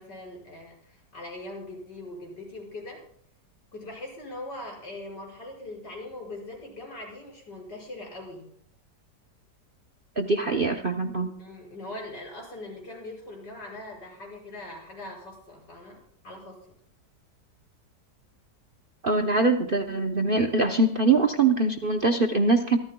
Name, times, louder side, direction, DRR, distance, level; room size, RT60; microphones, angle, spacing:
voice 1, 0.0-3.0 3.7-8.5 11.4-16.6, left 2 dB, 70° left, -1 dB, 6.6 m, -41 dB
voice 2, 10.2-11.3 19.0-22.8, right 3 dB, 40° right, 5 dB, 0.8 m, -23 dB
26.5 x 13.5 x 2.3 m, 0.63 s
omnidirectional pair, 1.9 m